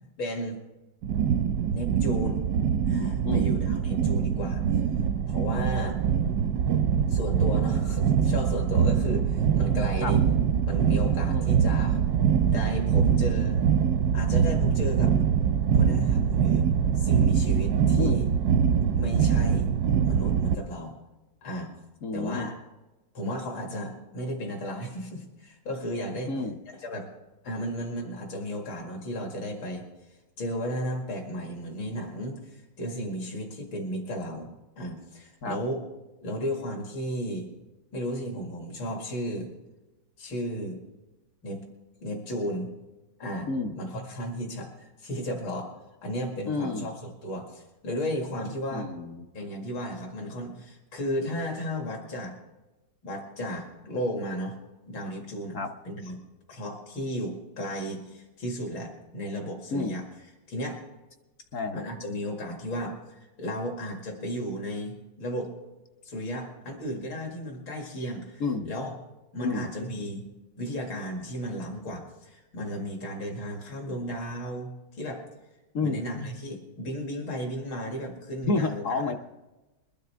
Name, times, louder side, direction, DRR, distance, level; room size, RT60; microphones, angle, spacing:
voice 1, 0.2-0.6 1.7-2.5 2.9-4.6 5.3-6.0 7.1-10.2 10.6-12.0 12.4-13.6 14.1-15.2 15.7-16.7 16.9-18.3 18.9-19.7 20.0-21.0 21.4-21.7 22.1-22.5 23.1-26.3 26.8-27.1 27.4-29.9 30.4-35.8 36.2-37.5 37.9-39.5 40.2-40.8 41.4-41.7 42.0-42.7 43.2-45.7 46.0-48.9 49.3-52.4 53.0-54.6 54.9-55.6 55.8-56.2 56.5-60.0 60.5-60.8 61.7-65.5 66.0-68.9 69.3-70.3 70.6-75.2 75.8-79.2, equal, 75° left, 1 dB, 2.8 m, -34 dB
sound 1, 1.0-20.5, right 7 dB, 75° right, 0.9 m, -23 dB
voice 2, 11.3-11.8 18.0-18.2 18.6-18.8 22.0-22.5 26.3-26.6 35.4-35.6 43.5-43.7 46.5-46.9 48.7-49.3 55.5-55.7 59.7-60.0 61.5-61.8 68.4-68.7 69.4-69.7 75.7-76.0 78.4-79.1, left 3 dB, 60° left, 5 dB, 0.8 m, -30 dB
22.0 x 12.0 x 3.4 m, 1.1 s
omnidirectional pair, 2.1 m